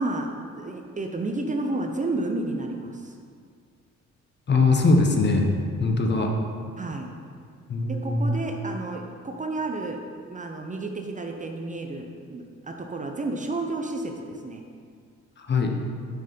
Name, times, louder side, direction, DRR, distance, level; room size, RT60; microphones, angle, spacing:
voice 1, 0.0-3.1 6.8-7.1 7.9-10.0 10.3-14.6, right 2 dB, 25° right, 3 dB, 0.6 m, -31 dB
voice 2, 4.5-5.5 5.8-6.4 7.7-8.3 15.4-15.8, left 3 dB, 35° left, 2 dB, 0.9 m, -21 dB
6.4 x 4.5 x 5.3 m, 2.1 s
cardioid pair, 90°, 30 cm